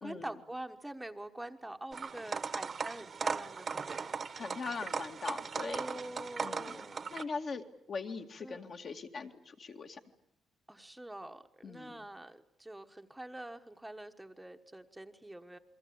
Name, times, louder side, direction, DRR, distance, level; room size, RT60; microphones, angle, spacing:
voice 1, 0.0-4.3 5.5-7.1 8.4-8.7 10.7-15.6, right 1 dB, 5° right, 6 dB, 1.2 m, -45 dB
sound 1, 1.9-7.2, right 5 dB, 40° right, 1.3 m, -38 dB
voice 2, 4.4-5.8 6.4-6.7 7.1-10.0 11.6-12.0, left 4 dB, 45° left, 4 dB, 2.2 m, -41 dB
29.0 x 23.0 x 8.7 m, 0.76 s
cardioid pair, 125°, 0 cm